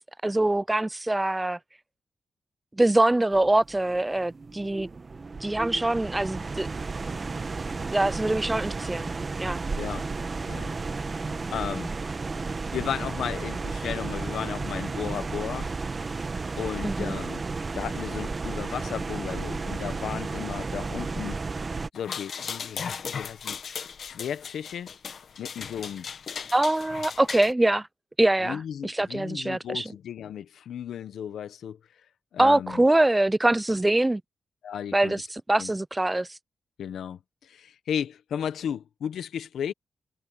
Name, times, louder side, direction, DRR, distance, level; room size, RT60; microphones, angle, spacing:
voice 1, 0.2-1.6 2.8-4.9 5.4-6.7 7.9-9.1 9.4-9.6 16.8-17.1 26.5-27.9 28.2-29.8 32.4-34.2 34.9-36.3, right 1 dB, 15° right, 0.3 m, -24 dB
sound 1, 3.3-21.9, right 4 dB, 40° right, 1.2 m, -33 dB
voice 2, 9.8-10.1 10.5-10.7 11.5-11.9 12.7-15.7 16.6-17.4 17.7-21.4 21.9-23.6 24.0-24.9 25.4-26.1 28.4-31.8 32.3-32.8 34.6-35.2 35.6-35.7 36.8-39.7, left 9 dB, 90° left, 1.2 m, -34 dB
sound 2, 21.9-27.5, left 6 dB, 70° left, 1.5 m, -37 dB
cardioid pair, 75°, 0 cm